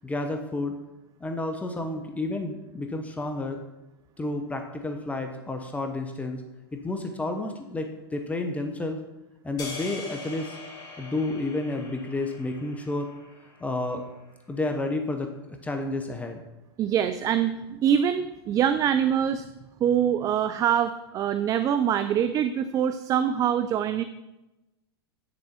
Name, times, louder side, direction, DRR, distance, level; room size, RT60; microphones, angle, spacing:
voice 1, 0.0-0.7 1.2-3.6 4.2-6.4 6.7-9.0 9.4-10.6 11.0-13.1 13.6-14.0 14.5-16.4, left 2 dB, 10° left, 4 dB, 0.9 m, -31 dB
sound 1, 9.6-13.9, left 4 dB, 30° left, 2.3 m, -42 dB
voice 2, 16.8-19.5 19.8-24.0, right 9 dB, 25° right, 11 dB, 0.4 m, -24 dB
9.2 x 6.9 x 4.4 m, 0.99 s
hypercardioid pair, 100°, 13 cm